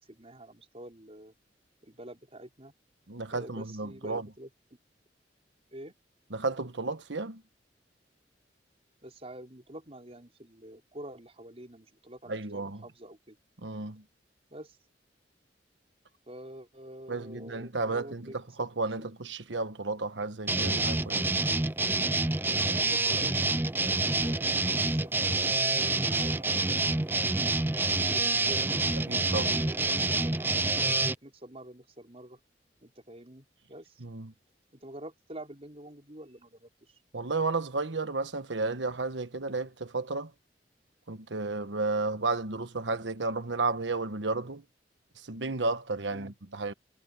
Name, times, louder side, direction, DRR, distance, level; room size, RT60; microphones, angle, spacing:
voice 1, 0.0-1.3 1.8-2.7 3.3-4.5 5.7-6.0 9.0-13.4 14.5-14.8 16.3-18.4 19.0-19.1 22.6-24.5 24.8-27.5 28.0-28.8 29.3-32.4 32.8-34.0 34.7-37.0 46.1-46.3, right 1 dB, 35° right, 5.4 m, -47 dB
voice 2, 3.1-4.3 6.3-7.4 12.3-12.8 13.6-14.0 17.1-21.3 29.0-29.5 34.0-34.3 37.1-40.3 41.1-44.6 45.2-46.7, right 3 dB, 90° right, 1.3 m, -32 dB
sound 1, 20.5-31.2, right 3 dB, 10° right, 0.5 m, -27 dB
head